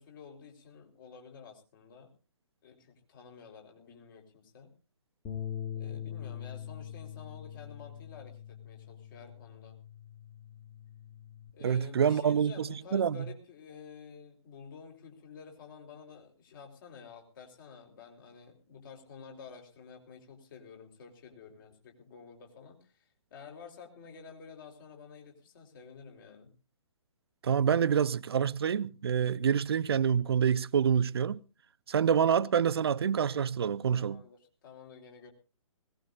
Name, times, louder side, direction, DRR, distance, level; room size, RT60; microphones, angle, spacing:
voice 1, 0.0-2.1 2.6-4.7 5.7-9.8 11.5-26.5 33.9-35.3, left 6 dB, 40° left, 4.1 m, -51 dB
Bass guitar, 5.2-11.5, left 9 dB, 20° left, 2.2 m, -43 dB
voice 2, 11.6-13.2 27.4-31.4 31.9-34.2, right 7 dB, 50° right, 0.6 m, -27 dB
21.0 x 18.5 x 2.6 m
figure-of-eight pair, 130°, 17 cm